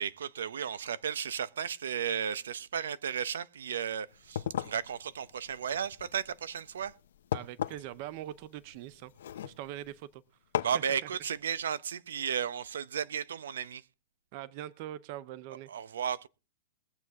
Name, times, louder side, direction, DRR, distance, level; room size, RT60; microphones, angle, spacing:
voice 1, 0.0-6.9 10.6-13.8 15.7-16.3, right 8 dB, 90° right, 0.8 m, -34 dB
sound 1, 4.1-10.0 10.5-10.9, left 10 dB, 65° left, 0.8 m, -38 dB
voice 2, 7.3-10.2 10.6-11.1 14.3-15.7, right 13 dB, 35° right, 0.6 m, -43 dB
22.0 x 7.8 x 3.6 m
hypercardioid pair, 175°, 0 cm